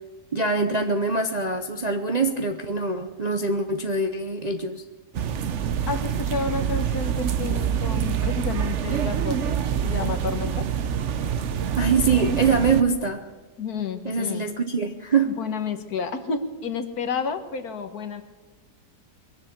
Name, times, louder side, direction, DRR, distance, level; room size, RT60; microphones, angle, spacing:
voice 1, 0.3-4.8 11.8-13.3 14.0-15.3, right 4 dB, 35° right, 4 dB, 0.6 m, -24 dB
sound 1, 5.1-12.8, right 8 dB, 55° right, 0.9 m, -26 dB
voice 2, 5.9-10.7 13.6-14.5 15.3-18.2, left 5 dB, 65° left, 8 dB, 1.7 m, -30 dB
22.0 x 7.5 x 8.5 m, 1.2 s
omnidirectional pair, 1.8 m